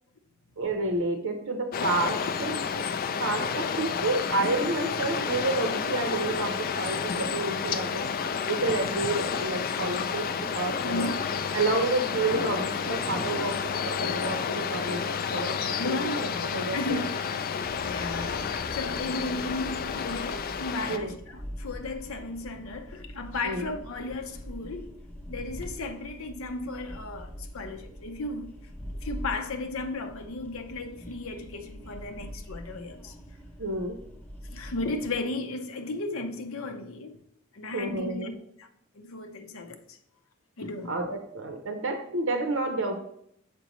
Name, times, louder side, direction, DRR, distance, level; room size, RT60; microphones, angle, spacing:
voice 1, 0.6-2.8 3.2-11.1 11.5-17.0 20.9-21.1 23.4-23.6 33.6-34.0 37.7-38.3 40.9-43.0, right 2 dB, 65° right, 0.7 m, -30 dB
sound 1, 1.7-21.0, left 6 dB, 45° left, 0.3 m, -30 dB
voice 2, 10.8-11.2 15.8-17.2 17.8-24.9 25.3-28.5 29.0-33.1 34.4-37.1 37.5-38.7 38.9-40.0 40.6-40.9, left 2 dB, 70° left, 0.7 m, -35 dB
sound 2, 17.6-35.2, equal, 10° left, 0.7 m, -43 dB
6.8 x 5.1 x 3.0 m
head